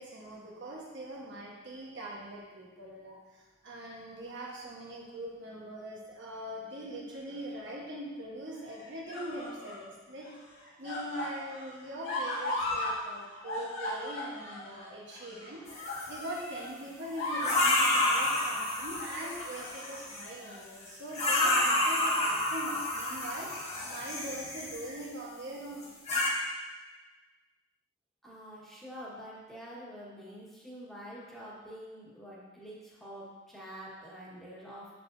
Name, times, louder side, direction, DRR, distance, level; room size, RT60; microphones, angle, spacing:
voice 1, 0.0-10.4 10.8-23.5 23.9-25.9, right 1 dB, 65° right, -3 dB, 1.3 m, -42 dB
sound 1, 7.1-7.7 8.6-9.9 10.2-13.0 13.2-16.7 17.0-17.7 18.1-18.4 19.0-20.0 20.4-20.6 21.3-21.8 22.1-22.3 23.4-24.1 24.9-25.0, left 1 dB, 80° left, 1.9 m, -38 dB
sound 2, 15.7-16.2 17.4-20.3 21.1-25.0 25.8-26.3, left 1 dB, 35° left, 1.5 m, -29 dB
voice 2, 28.2-34.9, equal, ahead, -7 dB, 1.5 m, -46 dB
7.2 x 6.5 x 2.7 m, 1.2 s
head